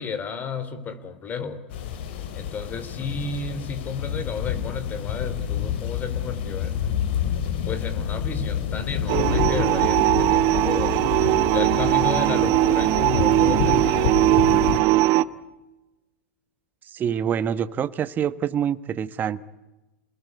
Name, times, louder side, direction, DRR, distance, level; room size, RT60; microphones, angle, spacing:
voice 1, 0.0-1.6 2.3-7.0 7.7-14.4, left 5 dB, 30° left, 13 dB, 3.3 m, -32 dB
sound 1, 1.7-14.8, left 8 dB, 65° left, 3.3 m, -28 dB
sound 2, 9.1-15.2, right 17 dB, 50° right, 1.0 m, -20 dB
voice 2, 16.9-19.4, right 8 dB, 30° right, 14 dB, 1.3 m, -26 dB
29.5 x 20.0 x 9.6 m, 1.1 s
hypercardioid pair, 105°, 6 cm